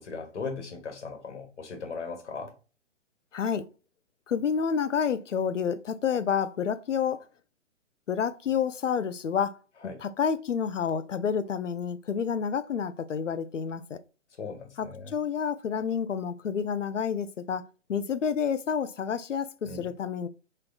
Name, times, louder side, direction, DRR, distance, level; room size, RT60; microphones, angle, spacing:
voice 1, 0.0-2.5 9.8-10.0 14.4-15.1 19.7-19.8, left 4 dB, 70° left, 1.4 m, -38 dB
voice 2, 3.3-3.7 4.3-7.2 8.1-9.6 10.0-14.0 14.8-20.3, left 7 dB, 85° left, 0.6 m, -29 dB
3.9 x 3.2 x 2.4 m
figure-of-eight pair, 130°, 36 cm